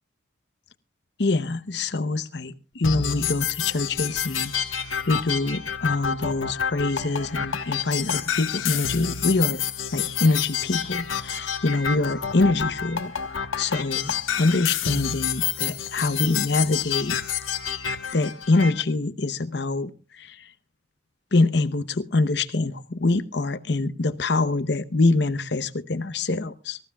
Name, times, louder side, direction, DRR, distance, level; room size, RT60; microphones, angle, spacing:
voice 1, 1.2-9.6 9.9-17.2 18.1-20.5 21.3-26.8, left 3 dB, 55° left, 0.8 m, -25 dB
sound 1, 2.8-18.8, left 8 dB, 90° left, 1.3 m, -29 dB
24.0 x 15.0 x 2.3 m
head